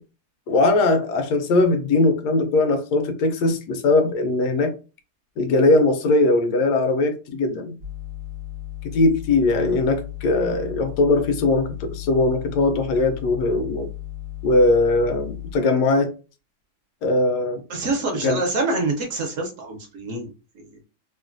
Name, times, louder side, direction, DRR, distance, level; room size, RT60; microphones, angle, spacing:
voice 1, 0.5-4.7 5.4-7.7 8.9-13.9 14.4-16.1 17.0-17.6 18.2-18.4, left 2 dB, 90° left, 1.2 m, -20 dB
sound 1, 7.8-15.5, left 14 dB, 35° right, 0.5 m, -35 dB
voice 2, 17.7-20.7, right 3 dB, 65° right, 0.9 m, -26 dB
3.1 x 2.1 x 2.5 m
omnidirectional pair, 1.7 m